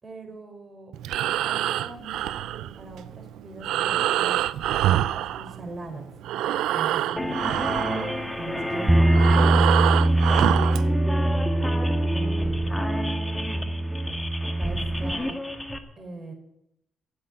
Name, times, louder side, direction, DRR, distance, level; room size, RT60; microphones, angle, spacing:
voice 1, 0.0-4.4 5.1-6.1 6.7-7.4 8.4-10.2 11.6-13.1 14.6-15.4 16.0-16.3, right 2 dB, 35° right, 4 dB, 4.6 m, -41 dB
Breathing, 0.9-5.9 6.2-10.9, right 12 dB, 85° right, 0.5 m, -26 dB
sound 1, 7.2-15.8, left 1 dB, 10° left, 1.8 m, -31 dB
Bass guitar, 8.9-15.1, right 1 dB, 10° right, 0.6 m, -23 dB
15.5 x 8.0 x 9.7 m, 0.82 s
cardioid pair, 90°, 0 cm